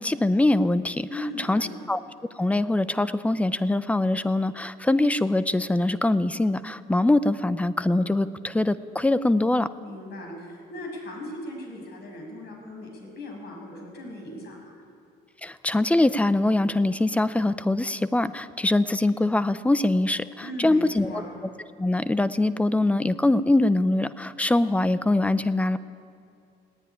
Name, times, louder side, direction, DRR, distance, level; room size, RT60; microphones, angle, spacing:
voice 1, 0.0-2.0 2.3-9.7 15.4-21.2 21.8-25.8, left 2 dB, 5° left, 14 dB, 0.5 m, -23 dB
voice 2, 1.1-1.7 9.8-14.8 20.4-21.2, left 1 dB, 60° left, 0 dB, 6.8 m, -38 dB
18.5 x 17.5 x 9.8 m, 2.5 s
cardioid pair, 155°, 19 cm